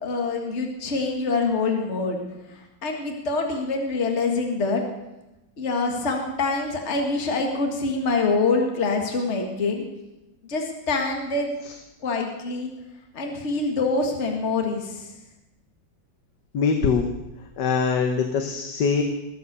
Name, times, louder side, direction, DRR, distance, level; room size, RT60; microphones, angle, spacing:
voice 1, 0.0-2.2 2.5-4.8 5.6-9.8 10.4-11.5 12.0-12.7 13.1-15.1, left 3 dB, 35° left, 3 dB, 2.0 m, -25 dB
voice 2, 16.5-17.1 17.6-19.0, left 5 dB, 65° left, 5 dB, 1.6 m, -22 dB
20.5 x 8.0 x 6.8 m, 0.99 s
omnidirectional pair, 2.1 m